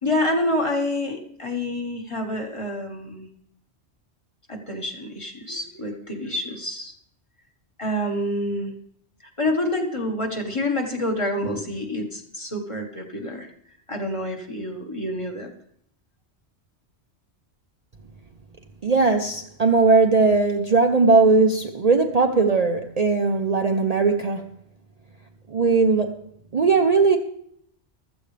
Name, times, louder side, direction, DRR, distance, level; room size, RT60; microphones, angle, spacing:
voice 1, 0.0-3.3 4.5-6.9 7.8-8.7 9.4-13.5 13.9-15.5, left 1 dB, 25° left, 1.5 m, -27 dB
voice 2, 18.8-24.5 25.5-26.1 26.5-27.2, right 4 dB, 40° right, 0.7 m, -19 dB
15.0 x 13.5 x 3.3 m
omnidirectional pair, 1.2 m